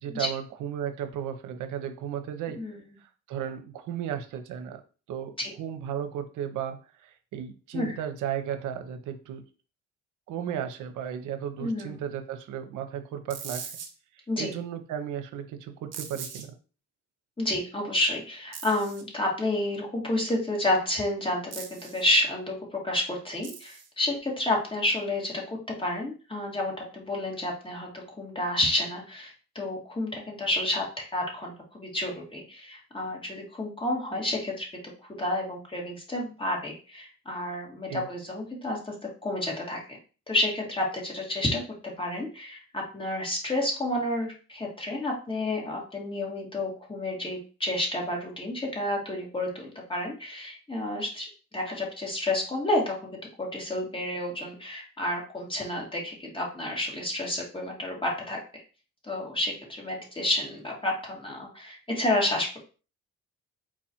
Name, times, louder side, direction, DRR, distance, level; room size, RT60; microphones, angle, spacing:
voice 1, 0.0-2.6 3.0-4.8 5.1-9.4 10.3-13.7 14.1-16.5 37.9-38.1, right 9 dB, 90° right, 8 dB, 0.7 m, -35 dB
voice 2, 11.6-12.0 14.3-14.5 17.4-30.9 31.1-34.7 35.2-38.9 39.2-40.0 40.3-41.6 42.0-51.3 51.5-58.6 59.1-62.6, left 1 dB, 15° left, -1 dB, 1.8 m, -30 dB
sound 1, 13.3-13.9 15.9-16.4 18.5-19.0 21.5-22.1 23.4-23.9, right 7 dB, 55° right, 0.9 m, -40 dB
4.5 x 2.5 x 4.3 m, 0.35 s
cardioid pair, 90°, 30 cm